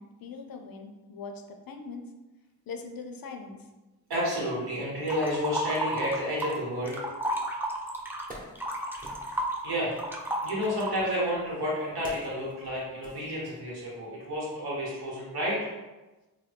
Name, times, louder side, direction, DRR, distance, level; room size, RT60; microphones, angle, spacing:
voice 1, 0.0-2.0 2.7-3.6, left 4 dB, 70° left, 4 dB, 0.5 m, -41 dB
voice 2, 4.1-7.1 9.6-10.0 10.4-15.7, equal, 90° right, -5 dB, 1.1 m, -30 dB
sound 1, 5.1-6.6 6.9-11.3, right 1 dB, 5° right, 0.4 m, -32 dB
Wood, 8.2-9.6 10.6-13.9 14.2-14.4, equal, 25° right, 0.8 m, -49 dB
3.1 x 2.2 x 3.3 m, 1.1 s
cardioid pair, 60°, 37 cm